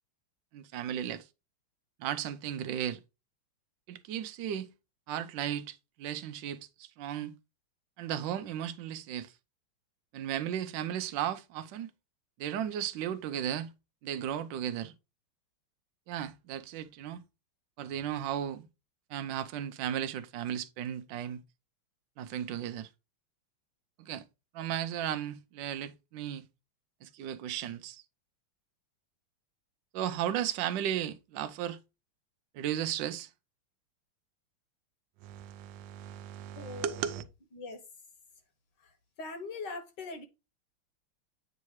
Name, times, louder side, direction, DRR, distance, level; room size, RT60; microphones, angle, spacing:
voice 1, 0.5-1.2 2.0-3.0 3.9-4.7 5.1-7.4 8.0-9.3 10.1-11.9 12.4-13.7 14.0-14.9 16.1-17.2 17.8-18.7 19.1-21.4 22.2-22.9 24.0-24.2 24.5-26.4 27.0-28.0 29.9-31.8 32.5-33.3 35.2-37.2, right 10 dB, 70° right, 1.2 m, -35 dB
voice 2, 36.6-37.2 37.5-37.8 39.2-40.2, left 3 dB, 60° left, 1.5 m, -41 dB
8.5 x 2.8 x 4.6 m
omnidirectional pair, 2.4 m